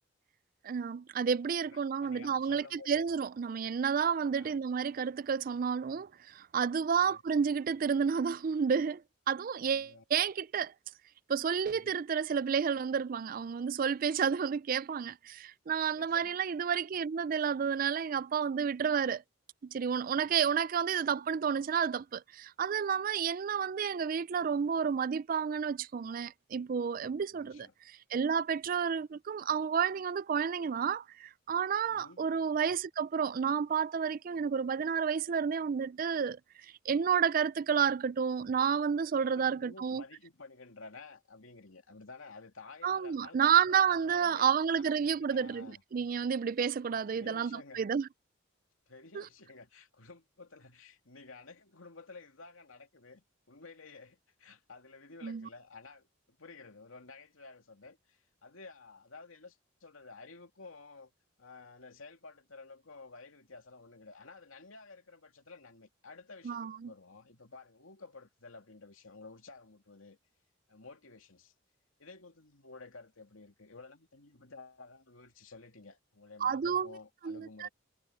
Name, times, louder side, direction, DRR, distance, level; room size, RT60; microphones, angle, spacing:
voice 1, 0.6-9.0 9.3-10.7 11.3-19.2 19.6-27.7 28.1-36.4 36.9-40.0 42.8-48.1 55.2-55.5 66.4-66.9 76.4-76.9 77.2-77.7, right 7 dB, 45° right, 0.3 m, -30 dB
voice 2, 1.6-3.0 4.4-4.6 5.5-5.6 6.9-7.2 9.6-10.0 11.7-12.0 16.0-16.3 20.2-20.4 27.3-27.7 31.9-32.2 39.2-44.5 44.7-45.8 46.9-47.8 48.9-61.1 61.4-70.2 70.7-71.5 72.0-77.7, left 3 dB, 85° left, 2.7 m, -52 dB
head